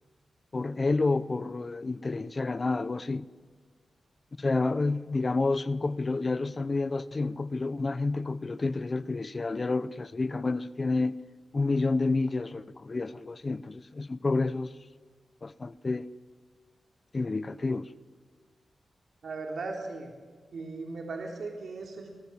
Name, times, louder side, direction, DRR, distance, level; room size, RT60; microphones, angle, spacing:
voice 1, 0.5-3.3 4.4-11.2 11.5-14.7 15.4-16.1 17.1-17.9, left 3 dB, 35° left, 0.9 m, -29 dB
voice 2, 19.2-20.1 20.5-22.2, right 3 dB, 70° right, 3.7 m, -37 dB
28.5 x 20.0 x 7.6 m
wide cardioid pair, 110°, 0 cm